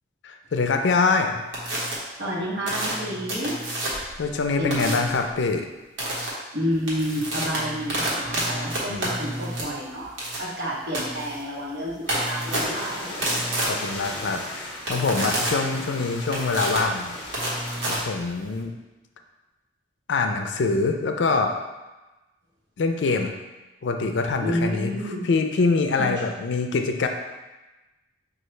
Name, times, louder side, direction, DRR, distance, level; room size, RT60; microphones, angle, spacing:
voice 1, 0.2-1.4 4.2-5.7 8.9-9.1 13.6-17.1 17.9-18.7 20.1-21.6 22.8-23.3 23.8-24.9 25.2-27.1, left 4 dB, 70° left, 5 dB, 0.4 m, -24 dB
sound 1, 1.5-1.9 2.7-4.1 4.7-5.2 6.0-6.3 6.7-18.6, right 1 dB, 90° right, 1.2 m, -29 dB
voice 2, 2.2-3.5 4.6-5.0 6.5-10.1 10.4-13.0 24.4-25.2 26.0-26.1, equal, 65° right, -6 dB, 1.1 m, -29 dB
sound 2, 12.1-18.0, left 1 dB, 30° left, 0.8 m, -36 dB
5.7 x 2.4 x 3.2 m, 1.1 s
head